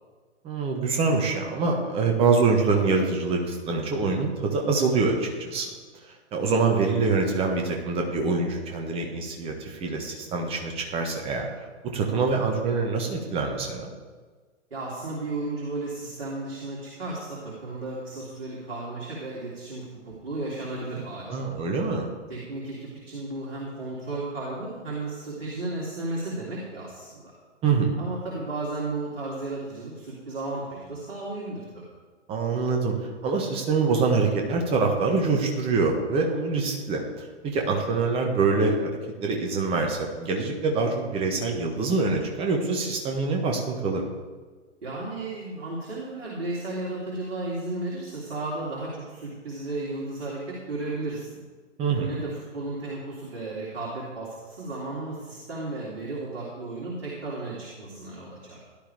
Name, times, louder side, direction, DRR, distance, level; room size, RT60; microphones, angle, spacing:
voice 1, 0.4-5.7 6.3-11.5 11.8-13.9 21.3-22.1 27.6-28.0 32.3-32.9 33.2-38.7 39.2-44.1 51.8-52.2, right 4 dB, 15° right, 2 dB, 1.4 m, -25 dB
voice 2, 14.7-21.6 22.3-27.3 28.0-31.8 44.8-51.4 52.0-58.6, right 2 dB, 55° right, -5 dB, 3.5 m, -34 dB
16.5 x 11.5 x 3.5 m, 1.4 s
figure-of-eight pair, 120°, 36 cm